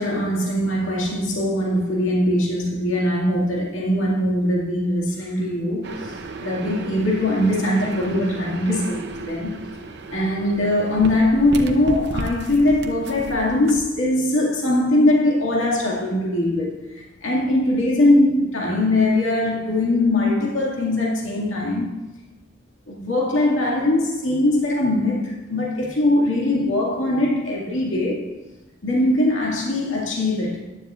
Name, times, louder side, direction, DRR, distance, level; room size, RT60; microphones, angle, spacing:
voice 1, 0.0-6.1 6.4-9.6 10.1-21.9 22.9-28.3 28.8-30.6, left 1 dB, 90° left, 2.2 m, -21 dB
sound 1, 5.8-13.8, right 2 dB, 55° right, 0.8 m, -34 dB
14.5 x 11.0 x 2.5 m
head